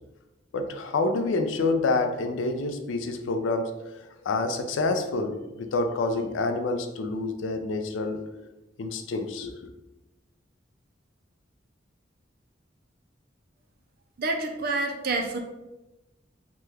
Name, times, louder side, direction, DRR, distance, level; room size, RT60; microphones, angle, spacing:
voice 1, 0.5-8.2 8.8-9.5, left 3 dB, 75° left, 7 dB, 0.4 m, -28 dB
voice 2, 14.2-15.4, right 3 dB, 50° right, 4 dB, 0.4 m, -28 dB
2.9 x 2.3 x 3.2 m, 1.0 s
head